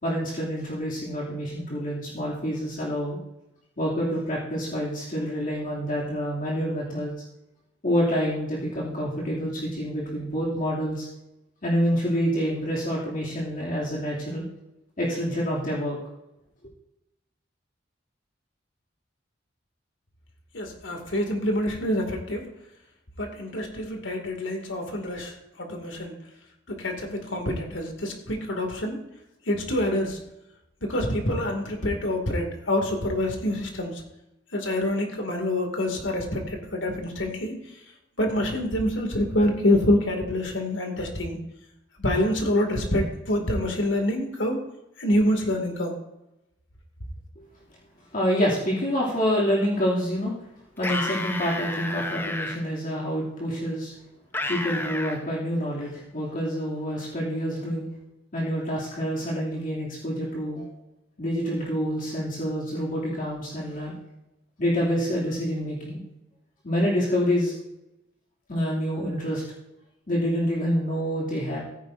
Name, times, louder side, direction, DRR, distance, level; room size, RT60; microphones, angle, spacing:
voice 1, 0.0-3.2 3.8-7.1 7.8-11.1 11.6-14.4 15.0-16.0 47.4-47.5 48.1-50.3 50.8-53.9 54.5-57.8 58.3-60.7 61.2-63.9 64.6-66.0 66.6-67.5 68.5-69.4 70.1-71.6, equal, 45° left, -5 dB, 2.7 m, -27 dB
voice 2, 20.5-22.4 23.2-25.3 25.6-26.1 26.7-29.0 29.5-30.2 30.8-34.0 34.5-37.5 38.2-41.4 42.0-44.6 45.0-45.9, left 1 dB, 85° left, 3 dB, 2.4 m, -26 dB
sound 1, 50.8-52.6 54.3-55.2, left 2 dB, 10° left, 0.9 m, -31 dB
15.5 x 9.7 x 2.7 m, 0.90 s
head